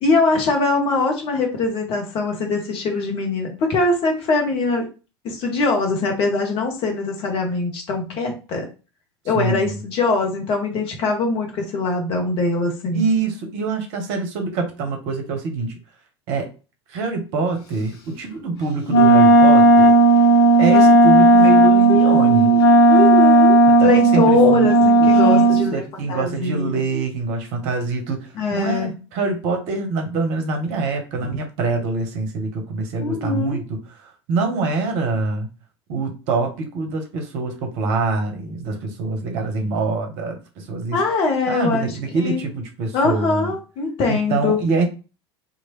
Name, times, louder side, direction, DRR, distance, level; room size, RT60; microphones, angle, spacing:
voice 1, 0.0-4.8 5.2-8.7 9.2-13.0 21.9-22.6 22.9-25.8 26.1-26.8 28.3-28.9 33.0-33.6 40.9-41.9 42.2-42.4 42.9-44.6, left 3 dB, 40° left, 2 dB, 1.0 m, -22 dB
voice 2, 9.3-9.8 12.9-15.7 16.3-16.5 16.9-20.0 20.6-22.6 23.7-24.7 25.0-35.5 35.9-41.0 41.5-43.5 44.1-44.9, right 3 dB, 50° right, 4 dB, 0.8 m, -25 dB
Wind instrument woodwind instrument, 18.9-25.7, right 2 dB, 60° left, 0.7 m, -13 dB
2.9 x 2.5 x 2.9 m, 0.32 s
figure-of-eight pair, 75°, 14 cm